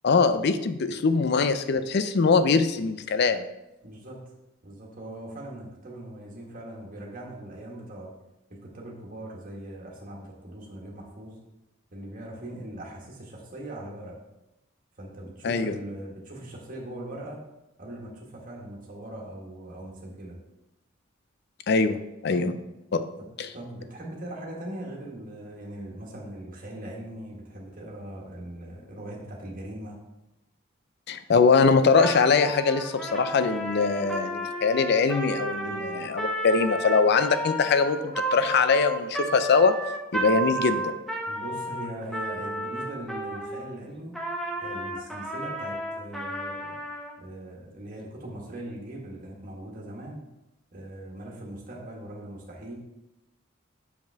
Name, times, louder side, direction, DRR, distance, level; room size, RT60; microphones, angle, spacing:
voice 1, 0.0-3.4 15.4-15.7 21.7-22.0 22.2-22.5 22.9-23.0 23.4-23.5 31.1-39.8 40.1-40.9, left 4 dB, 60° left, 11 dB, 0.5 m, -22 dB
voice 2, 3.8-4.3 4.6-8.1 8.5-11.4 11.9-14.1 15.0-17.4 17.8-20.4 22.3-22.5 23.2-23.3 23.5-30.0 35.6-35.9 41.3-44.1 44.6-46.8 47.2-50.2 50.7-52.7, right 1 dB, 45° right, -2 dB, 1.6 m, -40 dB
Trumpet, 32.0-43.7 44.1-47.1, right 1 dB, ahead, 0.8 m, -32 dB
6.9 x 5.2 x 3.5 m, 0.94 s
head